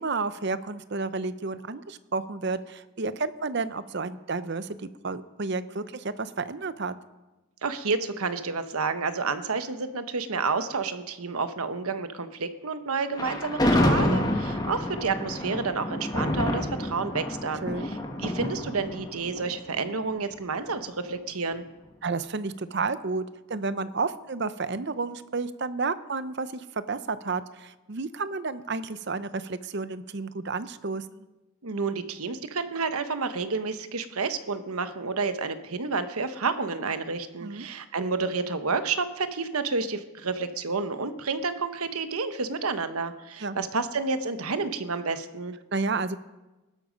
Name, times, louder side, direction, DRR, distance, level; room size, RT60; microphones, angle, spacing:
voice 1, 0.0-6.9 17.6-17.9 22.0-23.2 23.5-31.1 37.4-37.7 43.4-43.6 45.7-46.2, right 4 dB, 50° right, 14 dB, 0.7 m, -31 dB
voice 2, 7.6-21.6 31.6-45.6, right 4 dB, 90° right, 10 dB, 1.1 m, -30 dB
Thunder, 13.1-20.3, left 1 dB, 20° left, 1.6 m, -28 dB
17.5 x 12.5 x 5.2 m, 1.1 s
head